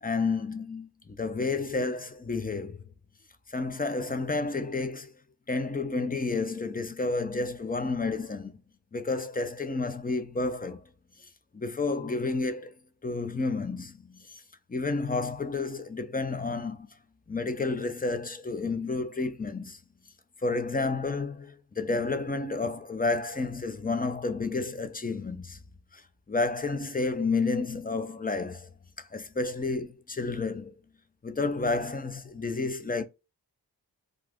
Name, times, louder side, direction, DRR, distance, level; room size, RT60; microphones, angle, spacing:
voice 1, 0.0-2.8 3.5-5.1 5.5-8.6 8.9-10.8 11.5-12.7 13.0-14.3 14.7-16.9 17.3-19.8 20.4-25.6 25.9-26.0 26.3-28.7 29.0-30.7 31.2-33.0, left 3 dB, 20° left, 0.5 m, -30 dB
2.5 x 2.4 x 3.4 m
wide cardioid pair, 55°, 43 cm